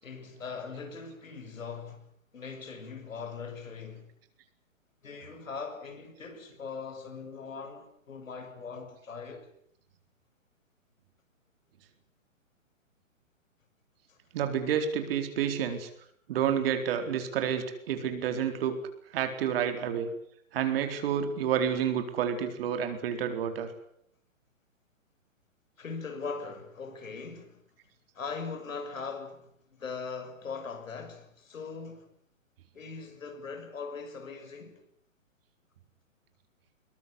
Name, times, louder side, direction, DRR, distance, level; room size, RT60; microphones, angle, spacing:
voice 1, 0.0-4.1 5.0-9.5 14.1-14.2 25.8-27.6 28.1-29.5 29.8-32.1 32.7-34.8, left 5 dB, 75° left, 6.7 m, -40 dB
voice 2, 14.3-15.9 16.3-18.8 19.1-20.1 20.5-23.7, right 8 dB, 45° right, 4.3 m, -29 dB
22.5 x 20.5 x 9.8 m
hypercardioid pair, 135°, 39 cm